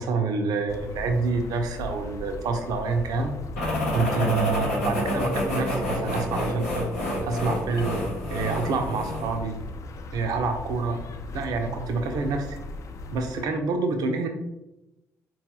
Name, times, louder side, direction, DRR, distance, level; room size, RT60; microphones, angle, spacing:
voice 1, 0.0-3.3 3.9-6.9 7.2-8.0 8.3-9.6 10.1-11.0 11.3-12.6 13.1-14.3, right 4 dB, 60° right, 5 dB, 0.5 m, -27 dB
sound 1, 0.7-13.4, left 2 dB, 45° left, 0.3 m, -38 dB
sound 2, 3.6-9.4, left 1 dB, 90° left, 0.8 m, -28 dB
3.8 x 2.3 x 2.8 m, 0.93 s
hypercardioid pair, 45°, 7 cm